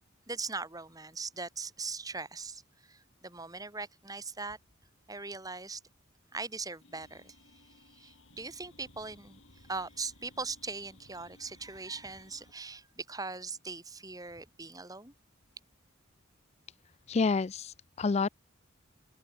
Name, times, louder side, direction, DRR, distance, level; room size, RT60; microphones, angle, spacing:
voice 1, 0.3-4.6 5.1-5.8 6.3-7.4 7.9-9.4 9.7-15.1, right 4 dB, 15° right, 4.5 m, -40 dB
sound 1, 6.8-12.5, left 2 dB, 65° left, 7.1 m, -60 dB
voice 2, 17.1-18.3, left 4 dB, 30° left, 0.4 m, -29 dB
head